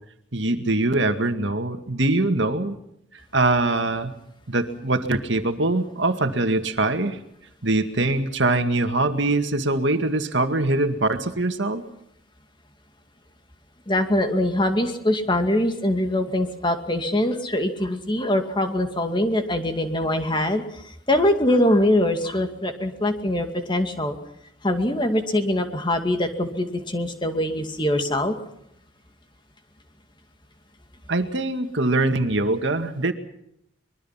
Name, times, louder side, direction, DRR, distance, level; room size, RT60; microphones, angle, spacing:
voice 1, 0.3-2.7 3.1-4.1 4.5-7.2 7.6-11.8 31.1-33.1, right 2 dB, 65° right, 7 dB, 2.0 m, -23 dB
voice 2, 13.9-24.2 24.6-28.3, left 1 dB, 25° left, 6 dB, 2.3 m, -23 dB
25.0 x 22.0 x 5.8 m, 0.77 s
head